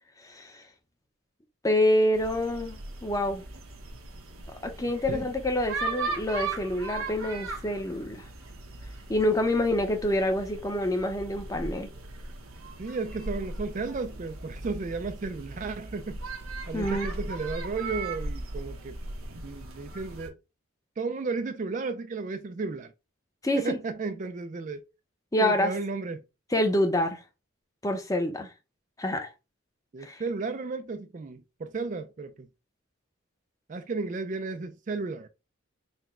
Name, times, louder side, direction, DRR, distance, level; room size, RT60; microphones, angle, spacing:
voice 1, 0.2-0.6 1.6-3.4 4.6-8.2 9.1-11.9 16.7-17.1 23.4-23.6 25.3-25.7 26.5-27.2 27.8-28.5 29.0-29.3 30.0-30.2, left 1 dB, 15° left, 0.6 m, -27 dB
sound 1, 2.1-20.3, right 3 dB, 90° right, 1.0 m, -38 dB
voice 2, 12.8-16.2 16.7-19.0 19.4-20.4 21.0-22.9 23.6-24.8 25.4-26.2 29.9-32.5 33.7-35.3, right 4 dB, 35° right, 0.3 m, -33 dB
4.1 x 2.2 x 4.3 m
head